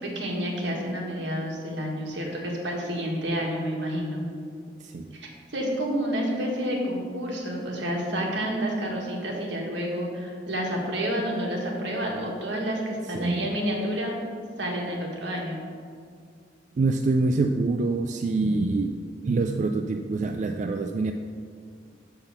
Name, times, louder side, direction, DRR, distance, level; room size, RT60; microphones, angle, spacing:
voice 1, 0.0-4.2 5.1-14.2 14.6-15.6, equal, 75° right, -1 dB, 1.7 m, -29 dB
voice 2, 4.8-5.1 13.1-13.5 16.8-19.0 19.2-21.1, right 3 dB, 40° right, 5 dB, 0.3 m, -25 dB
5.7 x 5.7 x 6.7 m, 2.1 s
head